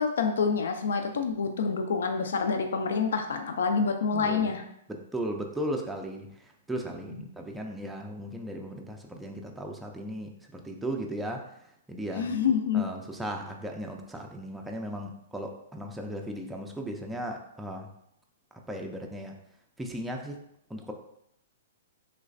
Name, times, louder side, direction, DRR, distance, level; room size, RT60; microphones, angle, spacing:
voice 1, 0.0-4.6 7.1-7.2 12.2-12.9, left 5 dB, 80° left, 5 dB, 0.4 m, -27 dB
voice 2, 4.1-4.5 4.9-12.3 12.7-17.9 18.5-19.4 19.8-20.4 20.7-20.9, right 1 dB, 5° right, 1 dB, 0.3 m, -36 dB
3.2 x 3.0 x 2.5 m, 0.76 s
hypercardioid pair, 130°, 0 cm